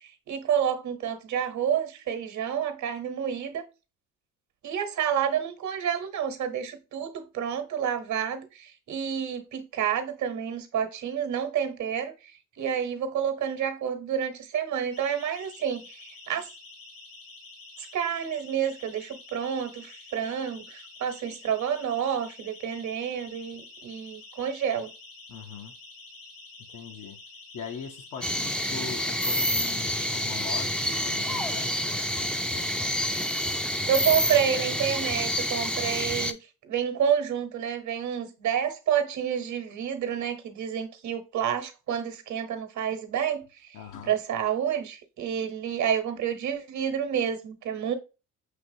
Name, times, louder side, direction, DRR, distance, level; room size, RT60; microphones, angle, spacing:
voice 1, 0.3-3.6 4.6-12.1 12.6-15.8 16.3-16.5 17.9-24.9 33.9-36.4 36.7-43.5 44.1-47.9, right 8 dB, 60° right, 1.0 m, -29 dB
Siren, 14.9-31.7, left 3 dB, 90° left, 2.7 m, -48 dB
voice 2, 25.3-25.7 26.7-27.2 27.5-32.7 43.7-44.1, left 6 dB, 65° left, 0.8 m, -41 dB
sound 1, 28.2-36.3, equal, 5° left, 0.5 m, -28 dB
5.9 x 2.9 x 2.7 m
supercardioid pair, 70°, 33 cm